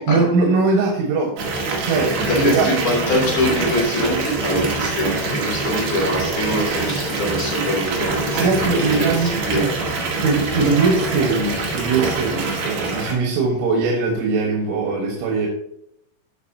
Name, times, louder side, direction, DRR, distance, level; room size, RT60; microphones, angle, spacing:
voice 1, 0.0-1.3 1.8-2.7 8.3-15.5, right 4 dB, 85° right, 1 dB, 4.0 m, -21 dB
Water tap faucet / Bathtub (filling or washing) / Fill (with liquid), 1.4-13.1, right 3 dB, 60° right, 3.5 m, -24 dB
voice 2, 2.2-9.7 10.6-10.7, left 1 dB, 50° left, -3 dB, 4.5 m, -24 dB
16.5 x 5.9 x 2.8 m, 0.75 s
omnidirectional pair, 5.3 m